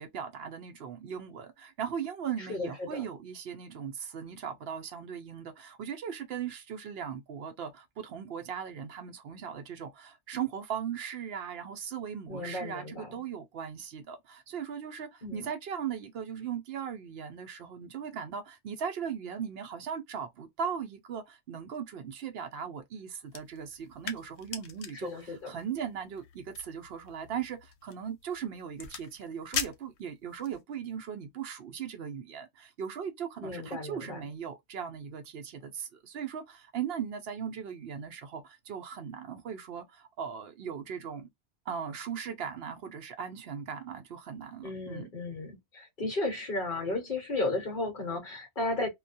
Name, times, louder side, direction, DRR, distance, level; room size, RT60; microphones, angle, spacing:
voice 1, 0.0-41.3 41.7-45.1, right 7 dB, 70° right, 0.8 m, -38 dB
voice 2, 2.4-3.0 12.3-13.2 15.2-15.4 24.9-25.5 33.4-34.2 44.6-48.9, left 2 dB, 50° left, 1.0 m, -34 dB
sound 1, 23.2-30.6, left 7 dB, 85° left, 0.9 m, -42 dB
2.3 x 2.2 x 2.5 m
omnidirectional pair, 1.1 m